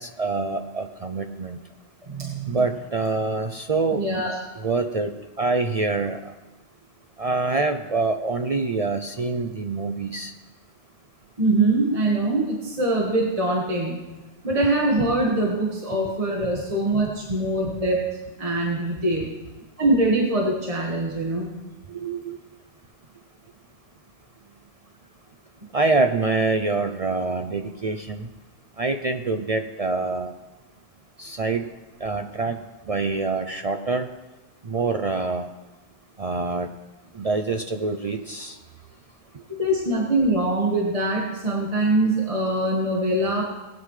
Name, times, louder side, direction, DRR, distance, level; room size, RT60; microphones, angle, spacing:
voice 1, 0.0-1.6 2.5-6.3 7.2-10.3 21.9-22.4 25.7-28.3 28.8-30.3 31.2-31.7 32.0-32.6 32.9-34.1 34.6-35.5 36.2-36.7 37.1-38.6, right 3 dB, 50° right, 6 dB, 0.4 m, -26 dB
voice 2, 2.1-2.6 3.9-4.4 11.4-14.0 14.4-18.0 18.4-19.3 19.8-21.5 39.6-43.4, right 2 dB, 30° right, -3 dB, 1.6 m, -23 dB
19.0 x 9.3 x 3.2 m, 1.1 s
omnidirectional pair, 1.2 m